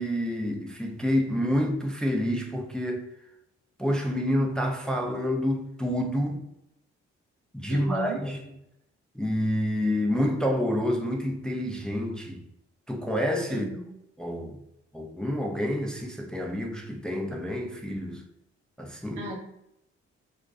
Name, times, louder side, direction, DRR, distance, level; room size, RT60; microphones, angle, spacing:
voice 1, 0.0-3.1 3.8-6.4 7.5-8.4 9.1-12.4 12.9-13.6 14.2-14.6 14.9-18.2 18.8-19.3, equal, ahead, 0.4 m, -28 dB
voice 2, 7.7-8.2 13.5-13.8 19.1-19.4, right 2 dB, 80° right, 0.6 m, -35 dB
2.3 x 2.2 x 2.4 m
hypercardioid pair, 45°, 32 cm